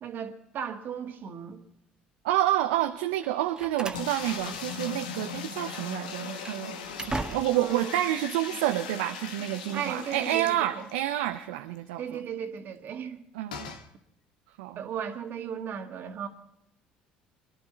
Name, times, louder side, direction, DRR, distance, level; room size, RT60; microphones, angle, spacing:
voice 1, 0.0-1.6 7.5-8.0 9.7-10.9 12.0-13.2 14.7-16.3, right 8 dB, 55° right, 2.0 m, -36 dB
voice 2, 2.2-6.8 7.1-12.2 13.3-13.7 14.6-14.8, right 13 dB, 80° right, 0.6 m, -29 dB
Slam, 3.2-5.2 5.5-5.7 6.2-7.8, right 2 dB, 20° right, 1.5 m, -38 dB
sound 1, 3.9-11.1 11.4-11.5 11.8-11.9 13.5-13.9, left 6 dB, 90° left, 1.2 m, -39 dB
22.5 x 11.5 x 4.4 m
hypercardioid pair, 65°, 4 cm